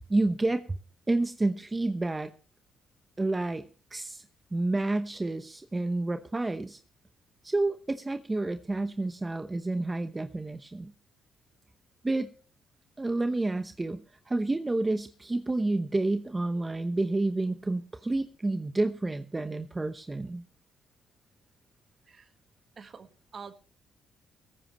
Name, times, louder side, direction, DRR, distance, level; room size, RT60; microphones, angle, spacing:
voice 1, 0.1-0.8 1.1-2.3 3.2-3.6 3.9-4.2 4.5-6.8 7.4-10.9 12.0-12.3 13.0-14.0 14.3-20.4, right 2 dB, 20° right, 8 dB, 0.9 m, -29 dB
voice 2, 22.8-23.5, right 6 dB, 45° right, 9 dB, 1.5 m, -46 dB
17.5 x 14.0 x 3.1 m, 0.37 s
cardioid pair, 90°, 0 cm